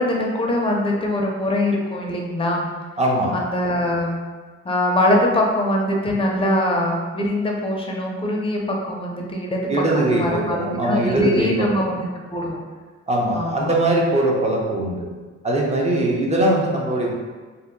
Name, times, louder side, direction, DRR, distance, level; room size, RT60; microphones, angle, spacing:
voice 1, 0.0-2.7 3.3-4.2 4.6-10.6 10.8-12.0 12.3-12.6 13.3-13.7, left 1 dB, 20° left, -1 dB, 0.6 m, -22 dB
voice 2, 3.0-3.4 9.7-11.7 13.1-15.0 15.4-17.1, right 1 dB, 20° right, -2 dB, 0.6 m, -21 dB
2.7 x 2.1 x 3.6 m, 1.4 s
cardioid pair, 90°, 30 cm